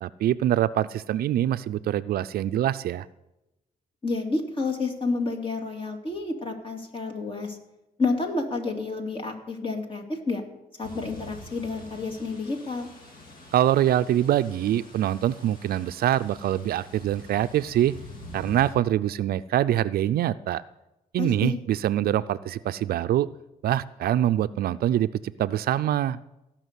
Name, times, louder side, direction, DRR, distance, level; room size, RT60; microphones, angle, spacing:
voice 1, 0.0-3.1 13.5-17.9 18.3-20.6 21.1-23.3 23.6-25.1 25.4-26.2, right 12 dB, 75° right, 14 dB, 0.5 m, -24 dB
voice 2, 4.0-7.6 8.0-10.4 10.8-12.9 21.2-21.6, left 3 dB, 35° left, 3 dB, 2.6 m, -29 dB
sound 1, 10.8-18.7, equal, 65° left, 3.5 m, -46 dB
17.0 x 6.0 x 8.2 m, 0.93 s
cardioid pair, 95°, 16 cm